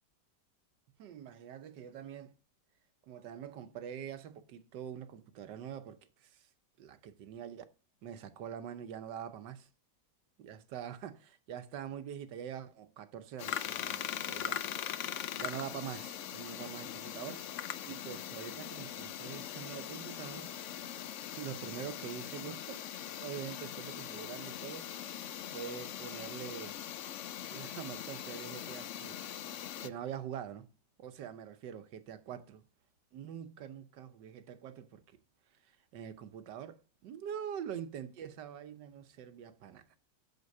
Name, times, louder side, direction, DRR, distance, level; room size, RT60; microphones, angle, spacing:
voice 1, 1.0-2.3 3.1-6.5 6.8-7.6 8.0-9.7 10.4-17.5 17.9-20.5 21.3-22.8 23.2-24.9 25.5-26.8 27.5-29.2 29.8-30.7 31.0-32.6 33.1-35.0 35.9-40.0, right 9 dB, 80° right, 1.5 m, -44 dB
sound 1, 13.4-29.9, left 10 dB, 75° left, 0.7 m, -41 dB
8.1 x 7.3 x 5.4 m
omnidirectional pair, 1.9 m